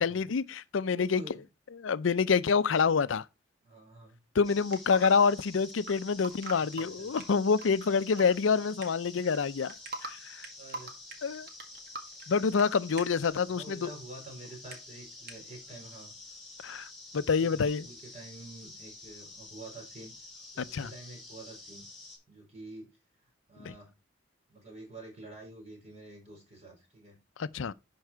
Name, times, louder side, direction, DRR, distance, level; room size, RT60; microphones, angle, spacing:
voice 1, 0.0-1.2 1.8-3.2 4.3-9.7 10.0-10.5 11.2-11.5 12.3-13.9 16.6-16.9 17.1-17.9 20.6-20.9 23.6-23.7 27.4-27.7, left 5 dB, 85° left, 0.5 m, -27 dB
voice 2, 0.8-1.4 3.6-4.2 6.6-7.2 10.5-10.9 13.4-16.1 17.1-20.1 20.5-21.9 22.3-22.9 23.2-23.9 24.5-27.2, right 2 dB, 35° right, 4.9 m, -48 dB
sound 1, 4.4-22.2, left 2 dB, ahead, 5.6 m, -49 dB
sound 2, 4.7-5.1 5.8-5.9 6.2-8.3 8.6-9.4 9.7-10.1 10.4-13.3 14.4-14.7 15.3-15.4, right 3 dB, 50° right, 1.9 m, -41 dB
11.5 x 4.7 x 4.6 m
head